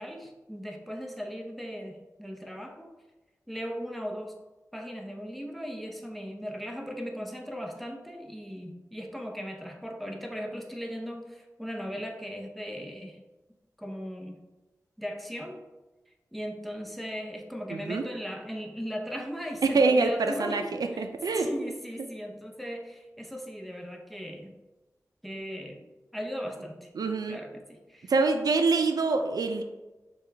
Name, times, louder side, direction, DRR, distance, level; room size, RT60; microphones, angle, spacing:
voice 1, 0.0-2.9 3.5-4.4 4.7-13.2 13.8-14.4 15.0-15.6 16.3-21.1 21.3-24.5 25.2-25.8 26.1-26.9 27.3-28.1, equal, ahead, 2 dB, 0.7 m, -38 dB
voice 2, 17.7-18.0 19.7-20.6 21.0-21.5 27.0-27.4 28.1-29.6, right 3 dB, 80° right, 6 dB, 0.4 m, -25 dB
6.5 x 2.4 x 3.3 m, 1.1 s
wide cardioid pair, 60°, 6 cm